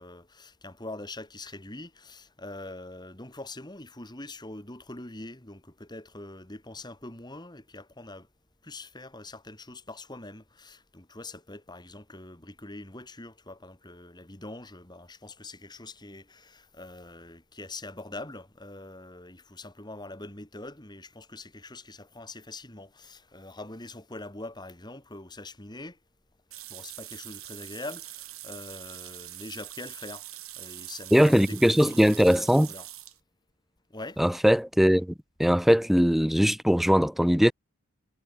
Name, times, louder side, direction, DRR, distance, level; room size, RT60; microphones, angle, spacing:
voice 1, 0.0-8.3 8.6-26.0 26.7-32.9 33.9-34.2, left 2 dB, 20° left, 2.7 m, -43 dB
sound 1, 26.5-33.2, right 16 dB, 75° right, 4.7 m, -43 dB
voice 2, 31.1-32.7 34.2-35.1 35.4-37.5, equal, ahead, 0.3 m, -20 dB
head